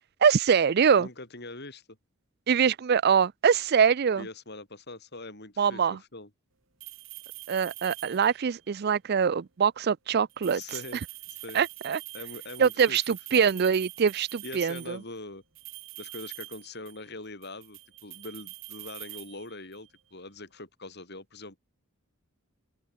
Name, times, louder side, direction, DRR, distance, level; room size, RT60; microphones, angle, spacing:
voice 1, 0.2-1.1 2.5-4.3 5.6-6.0 7.5-10.6 11.5-12.0 12.6-15.0, right 6 dB, 50° right, 0.4 m, -23 dB
voice 2, 1.0-2.0 4.2-6.3 10.5-11.0 11.3-11.6 12.1-13.5 14.4-15.4 16.0-21.6, left 2 dB, 50° left, 5.7 m, -43 dB
sound 1, 6.8-8.5 10.3-15.0 15.5-17.1 17.4-19.9, right 18 dB, 65° right, 2.7 m, -44 dB
open air
head